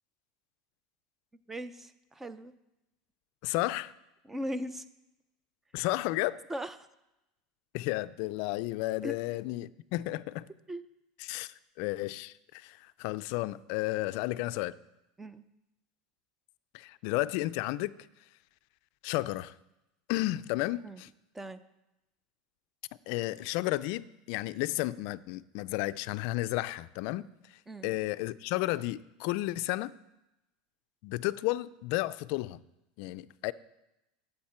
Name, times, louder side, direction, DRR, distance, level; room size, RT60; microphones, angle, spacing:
voice 1, 1.5-2.5 4.3-4.8 6.5-6.8 9.0-9.1 10.7-10.8 15.2-15.4 20.8-21.0 21.3-21.6 27.7-27.9, equal, 10° right, 13 dB, 0.5 m, -38 dB
voice 2, 3.4-3.9 5.7-6.4 7.7-10.5 11.2-14.7 16.7-17.9 19.0-19.5 20.1-21.1 23.1-30.0 31.0-32.6 33.0-33.5, left 18 dB, 60° left, 15 dB, 0.4 m, -33 dB
12.0 x 8.0 x 4.4 m, 0.93 s
supercardioid pair, 140°, 3 cm